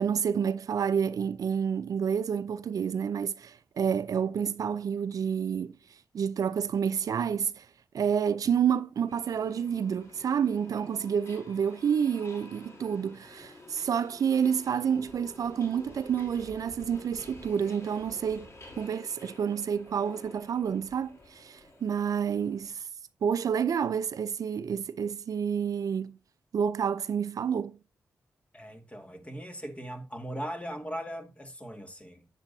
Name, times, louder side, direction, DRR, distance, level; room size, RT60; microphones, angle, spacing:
voice 1, 0.0-5.7 6.1-7.7 7.9-18.5 18.8-22.8 23.2-26.2 26.5-27.8, right 7 dB, 70° right, 0.5 m, -29 dB
Subway metro underground, 9.1-22.7, left 2 dB, 50° left, 3.2 m, -50 dB
voice 2, 28.5-32.3, equal, 20° left, 1.9 m, -39 dB
9.0 x 7.5 x 2.7 m
supercardioid pair, 45°, 6 cm